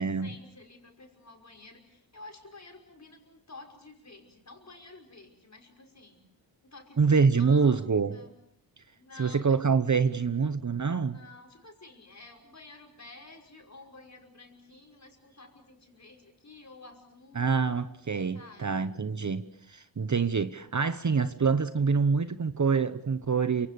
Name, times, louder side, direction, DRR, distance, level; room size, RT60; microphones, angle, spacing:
voice 1, 0.0-6.2 6.6-7.8 8.1-8.3 9.0-9.9 11.1-17.5 18.3-18.9, left 3 dB, 35° left, 5.7 m, -51 dB
voice 2, 7.0-8.2 9.2-11.2 17.3-23.7, right 5 dB, 40° right, 1.0 m, -26 dB
29.5 x 25.5 x 6.9 m
wide cardioid pair, 120°, 46 cm